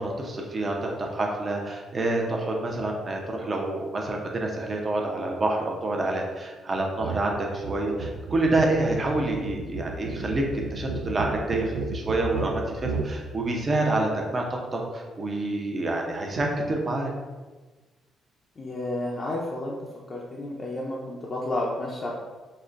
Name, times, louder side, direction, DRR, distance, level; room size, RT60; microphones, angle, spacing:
voice 1, 0.0-10.4 10.7-17.1, right 2 dB, 35° right, 1 dB, 0.7 m, -27 dB
sound 1, 7.0-7.3 7.5-13.1, right 3 dB, 90° right, 0.3 m, -33 dB
voice 2, 18.6-19.8 20.1-22.1, left 1 dB, 35° left, -3 dB, 0.5 m, -31 dB
5.3 x 2.1 x 2.5 m, 1.3 s
cardioid pair, 90°, 0 cm